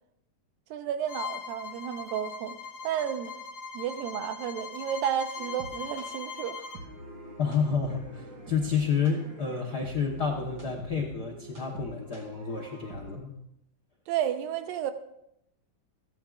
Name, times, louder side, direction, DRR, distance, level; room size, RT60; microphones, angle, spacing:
voice 1, 0.7-2.6 2.8-3.4 3.7-6.7 14.1-14.9, right 9 dB, 85° right, 8 dB, 2.6 m, -32 dB
Bowed string instrument, 1.1-6.9, left 5 dB, 70° left, 1.3 m, -40 dB
sound 1, 5.4-13.1, right 2 dB, 35° right, 3.3 m, -45 dB
voice 2, 7.4-13.3, left 6 dB, 85° left, 0 dB, 0.8 m, -30 dB
28.0 x 10.5 x 2.5 m, 0.79 s
omnidirectional pair, 4.0 m